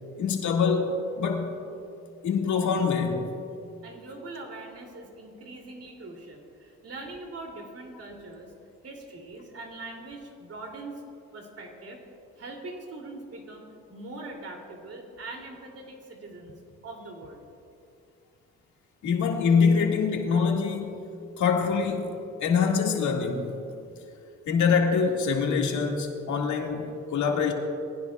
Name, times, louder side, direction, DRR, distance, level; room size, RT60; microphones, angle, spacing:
voice 1, 0.2-1.5 2.2-3.3 19.0-21.0 21.4-22.1 22.4-23.5 24.5-27.5, left 5 dB, 70° left, 1 dB, 2.1 m, -24 dB
voice 2, 3.8-8.5 8.8-11.0 11.3-12.0 12.4-16.5 16.8-17.5, right 2 dB, 55° right, 1 dB, 2.9 m, -42 dB
22.0 x 16.0 x 2.4 m, 2.6 s
cardioid pair, 90°, 30 cm